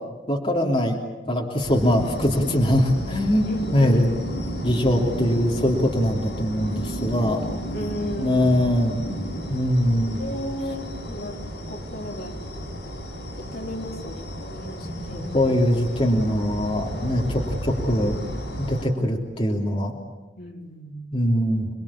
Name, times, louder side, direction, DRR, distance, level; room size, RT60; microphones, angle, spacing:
voice 1, 0.3-1.0 1.3-3.5 3.7-4.1 4.6-7.5 8.2-9.2 9.5-10.2 14.8-18.2 18.6-19.9 21.1-21.7, equal, 30° left, -1 dB, 3.1 m, -22 dB
sound 1, 1.6-18.9, equal, 75° left, 7.7 m, -33 dB
voice 2, 3.4-4.2 7.7-8.5 10.2-12.4 13.4-15.4 20.4-21.1, left 1 dB, 55° left, 1 dB, 3.7 m, -34 dB
28.5 x 21.5 x 8.7 m, 1.2 s
head